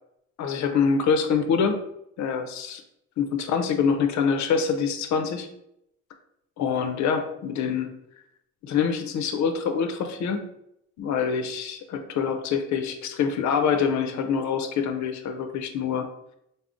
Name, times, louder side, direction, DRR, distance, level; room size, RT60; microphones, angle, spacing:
voice 1, 0.4-1.8 2.2-2.8 3.2-5.5 6.6-7.9 8.6-10.5 11.0-16.1, left 6 dB, 70° left, 6 dB, 0.6 m, -25 dB
3.5 x 2.0 x 3.7 m, 0.79 s
cardioid pair, 90°, 30 cm